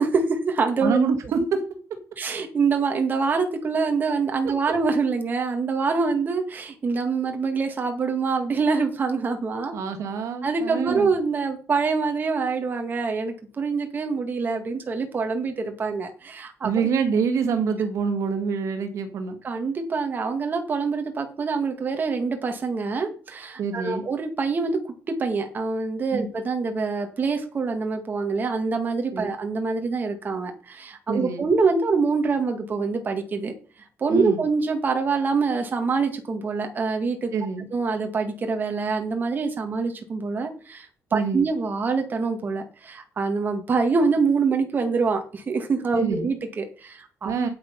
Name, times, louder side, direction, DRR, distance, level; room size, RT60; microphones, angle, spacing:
voice 1, 0.0-1.0 2.2-9.7 10.4-16.7 19.4-24.8 25.2-33.5 34.0-37.3 37.7-47.3, right 4 dB, 35° right, 4 dB, 2.0 m, -25 dB
voice 2, 0.8-1.7 9.7-11.1 16.6-19.4 23.6-24.0 26.1-26.3 29.1-29.3 31.1-31.4 34.1-34.4 37.3-37.7 41.1-41.4 45.9-46.3 47.2-47.5, right 5 dB, 75° right, 6 dB, 2.0 m, -26 dB
8.8 x 8.2 x 5.5 m, 0.37 s
cardioid pair, 130°, 5 cm